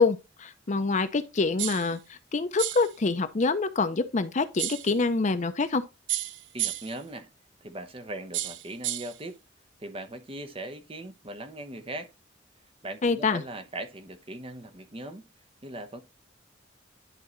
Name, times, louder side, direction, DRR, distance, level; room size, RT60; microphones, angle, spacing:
voice 1, 0.0-5.8 13.0-13.4, left 4 dB, 40° left, 0.6 m, -26 dB
sound 1, 1.6-1.9 2.6-2.9 4.6-4.9 6.1-7.0 8.3-9.2, right 13 dB, 70° right, 0.5 m, -32 dB
voice 2, 6.5-7.3 7.6-9.4 9.8-12.1 12.8-15.3 15.6-16.0, right 1 dB, 30° right, 0.8 m, -39 dB
11.0 x 3.8 x 3.1 m
head